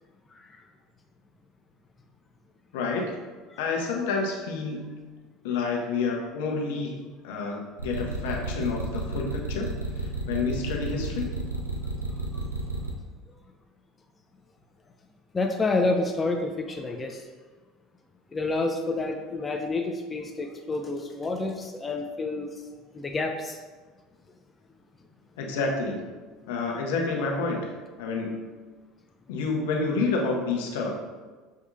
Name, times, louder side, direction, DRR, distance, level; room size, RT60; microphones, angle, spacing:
voice 1, 2.7-3.1 3.6-4.9 5.4-11.3 25.4-26.1 26.5-28.5 29.3-31.0, left 4 dB, 65° left, 0 dB, 0.6 m, -29 dB
sound 1, 7.8-12.9, right 2 dB, 85° right, 0.4 m, -31 dB
voice 2, 15.3-17.2 18.3-22.6 22.9-23.6, left 3 dB, 20° left, 3 dB, 0.4 m, -28 dB
6.1 x 2.6 x 2.5 m, 1.4 s
figure-of-eight pair, 65°, 0 cm